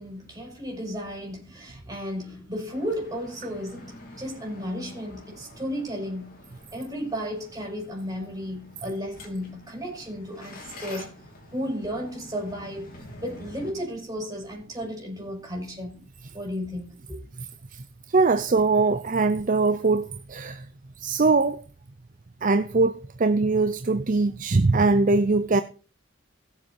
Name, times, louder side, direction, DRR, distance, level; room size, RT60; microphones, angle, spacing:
voice 1, 0.0-6.3 6.7-11.1 11.5-12.9 13.2-15.9 16.3-17.2, equal, 15° right, 6.4 m, -34 dB
sound 1, 2.7-13.7, left 2 dB, 45° left, 3.2 m, -47 dB
voice 2, 18.1-20.7 21.0-21.6 22.4-25.6, right 3 dB, 40° right, 0.6 m, -22 dB
16.5 x 7.4 x 4.5 m
head